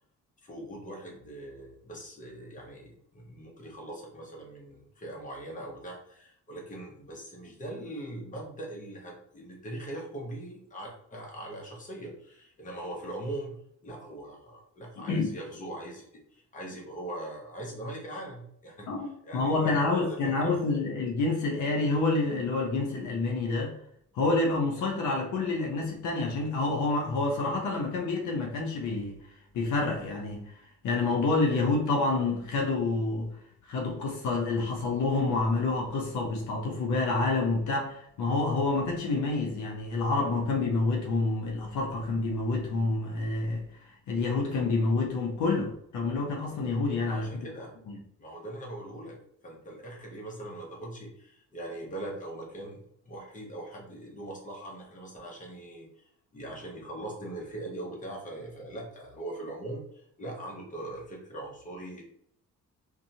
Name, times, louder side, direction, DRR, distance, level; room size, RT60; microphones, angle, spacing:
voice 1, 0.4-16.1 16.3-20.6 47.1-47.9 48.2-49.2 49.4-62.0, right 1 dB, 25° left, 0.9 m, -41 dB
voice 2, 15.0-15.3 18.9-23.8 24.1-29.2 29.5-30.5 30.8-33.3 33.6-47.4 47.9-48.0, left 3 dB, 75° left, 0.7 m, -28 dB
2.6 x 2.3 x 2.7 m
cardioid pair, 90°, 30 cm